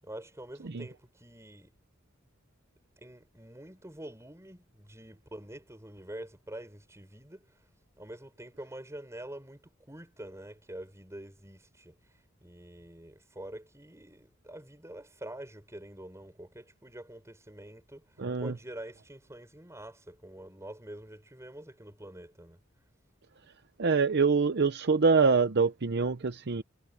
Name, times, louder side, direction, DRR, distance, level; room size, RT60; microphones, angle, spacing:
voice 1, 0.0-1.7 3.0-7.5 8.0-12.0 12.4-18.0 18.4-22.6, right 1 dB, 15° right, 6.8 m, -46 dB
voice 2, 18.2-18.5 23.8-26.6, right 4 dB, 55° right, 0.7 m, -25 dB
head